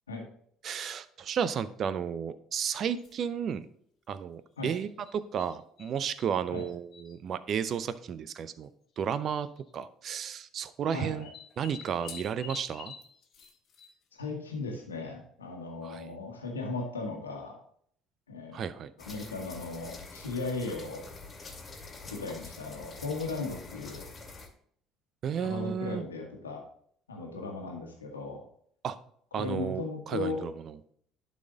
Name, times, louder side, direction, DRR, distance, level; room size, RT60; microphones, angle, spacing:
voice 1, 0.6-3.7 4.1-8.7 9.0-11.3 11.6-12.9 15.8-16.2 18.5-18.9 25.2-26.0 28.8-29.0 29.3-30.8, right 8 dB, 50° right, 15 dB, 0.5 m, -33 dB
sound 1, 3.0-3.3 4.6-5.9 6.2-7.1 8.1-8.2 8.3-8.4 9.4-9.7 11.0-14.2, left 6 dB, 50° left, 1.6 m, -48 dB
voice 2, 10.9-11.3 14.1-17.6 18.3-18.7 19.0-21.0 22.0-24.0 25.4-26.6 27.1-28.4 29.3-30.4, left 3 dB, 90° left, 1 dB, 1.3 m, -37 dB
sound 2, 19.0-24.5, left 3 dB, 30° left, 2.1 m, -46 dB
11.5 x 4.2 x 3.9 m, 0.64 s
hypercardioid pair, 60°, 0 cm